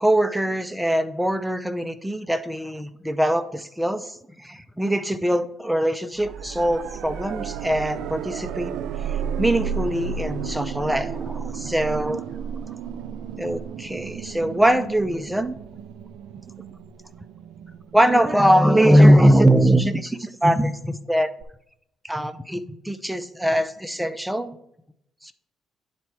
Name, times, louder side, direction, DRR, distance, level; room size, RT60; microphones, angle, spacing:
voice 1, 0.0-8.7 9.0-12.2 13.4-15.6 17.9-21.3 22.0-24.5 25.2-25.3, equal, 5° right, 11 dB, 0.5 m, -21 dB
sound 1, 6.2-19.1 21.4-21.5, right 7 dB, 85° right, 0.4 m, -33 dB
9.7 x 4.3 x 4.6 m, 0.77 s
cardioid pair, 90°, 0 cm